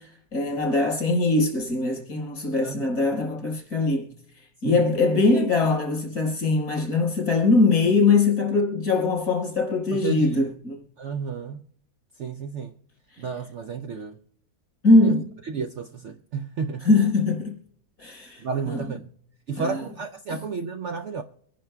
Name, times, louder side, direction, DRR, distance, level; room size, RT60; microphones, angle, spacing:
voice 1, 0.0-10.8 13.1-13.3 14.8-15.3 16.8-17.6 18.0-18.9 19.6-19.8 20.3-20.4, left 3 dB, 70° left, 5.1 m, -22 dB
voice 2, 9.9-10.5 11.0-11.7 12.2-12.7 13.2-14.2 15.0-15.1 15.5-16.9 18.4-19.1 19.5-21.2, right 5 dB, 60° right, 0.8 m, -32 dB
25.0 x 10.5 x 2.3 m
omnidirectional pair, 1.7 m